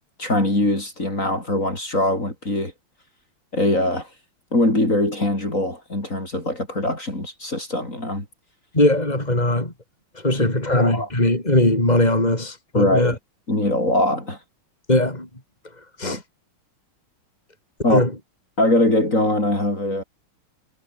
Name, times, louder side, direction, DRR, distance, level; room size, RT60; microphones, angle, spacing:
voice 1, 0.2-2.7 3.5-4.1 4.5-8.3 10.7-11.1 12.7-13.2 13.5-14.4 16.0-16.2 17.8-18.1 18.6-20.0, left 1 dB, 35° left, 6.8 m, -22 dB
voice 2, 8.7-9.7 10.2-13.1 14.9-15.3 16.0-16.2 17.9-18.1, left 1 dB, 15° left, 6.2 m, -20 dB
omnidirectional pair, 2.4 m